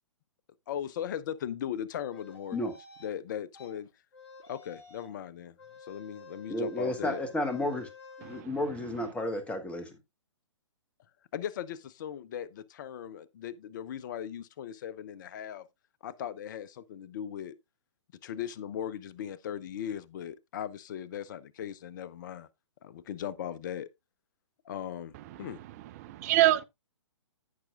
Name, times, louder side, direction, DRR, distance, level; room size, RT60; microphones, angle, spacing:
voice 1, 0.7-2.7 3.0-3.9 4.5-7.2 11.3-15.7 16.0-17.6 18.2-22.5 22.8-23.9 24.6-25.6, left 9 dB, 40° left, 0.6 m, -38 dB
sound 1, 2.1-3.1 3.5-3.7 4.1-5.2 5.6-8.4, left 4 dB, 55° left, 3.3 m, -51 dB
voice 2, 6.5-7.9 8.2-10.0, left 1 dB, 10° left, 1.2 m, -32 dB
voice 3, 8.2-8.6 25.1-25.6 25.8-26.6, right 15 dB, 30° right, 0.7 m, -27 dB
14.5 x 5.9 x 2.4 m
figure-of-eight pair, 120°, 16 cm